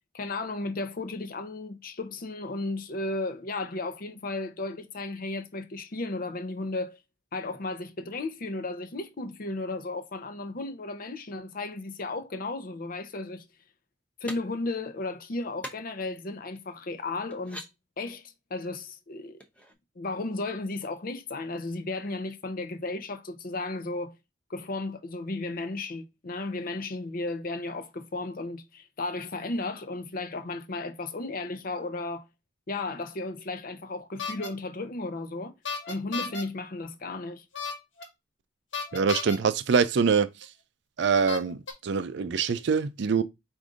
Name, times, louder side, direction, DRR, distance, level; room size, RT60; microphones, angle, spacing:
voice 1, 0.1-7.0 7.3-13.5 14.2-17.7 18.0-19.4 20.0-24.2 24.5-32.3 32.7-35.5 35.9-37.4, left 2 dB, 50° left, 0.6 m, -34 dB
sound 1, 14.3-14.4 15.6-15.8 16.5-16.6 17.3-17.7 19.4-19.7, equal, 5° left, 0.6 m, -40 dB
sound 2, 34.2-34.5 35.7-36.4 37.5-38.0 38.7-39.4 40.4-40.5 41.3-41.7, left 5 dB, 75° left, 1.2 m, -33 dB
voice 2, 38.9-40.3 41.0-43.2, right 5 dB, 65° right, 0.4 m, -24 dB
4.9 x 2.6 x 3.6 m
head